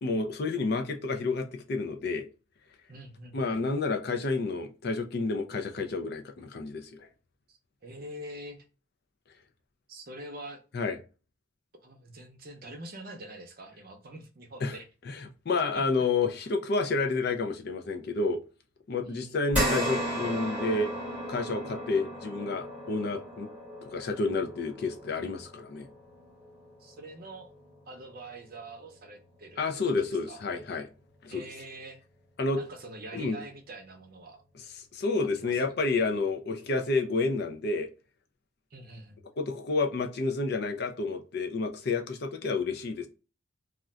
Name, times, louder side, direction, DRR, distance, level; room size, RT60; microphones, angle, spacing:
voice 1, 0.0-2.3 3.3-7.1 10.7-11.0 14.6-14.8 15.1-15.2 15.5-18.4 18.9-20.9 21.3-23.5 23.8-25.9 29.6-30.9 31.2-31.4 32.4-32.6 33.1-33.4 34.9-37.9 39.4-43.1, left 3 dB, 50° left, 0.4 m, -30 dB
voice 2, 2.9-3.6 7.5-8.6 9.9-10.6 11.8-14.9 15.7-16.1 16.4-16.5 19.0-19.4 26.8-27.5 27.9-30.4 31.3-32.0 32.6-34.4 35.3-35.7 38.7-39.2, right 1 dB, 45° right, 0.6 m, -45 dB
sound 1, 19.5-28.1 28.6-28.7 30.1-30.2, equal, 5° right, 1.1 m, -35 dB
2.4 x 2.2 x 3.7 m
head